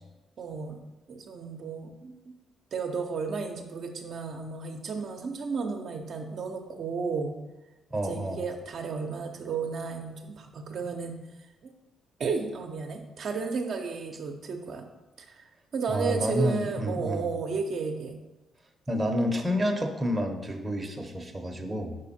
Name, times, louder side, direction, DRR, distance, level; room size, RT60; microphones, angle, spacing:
voice 1, 0.4-0.8 1.1-2.3 2.7-7.4 8.0-11.2 12.2-14.9 15.2-18.2, right 5 dB, 60° right, 3 dB, 0.7 m, -33 dB
voice 2, 7.9-8.4 15.9-17.3 18.9-22.0, equal, 20° right, 3 dB, 0.8 m, -29 dB
5.1 x 4.9 x 4.3 m, 1.1 s
cardioid pair, 90°, 0 cm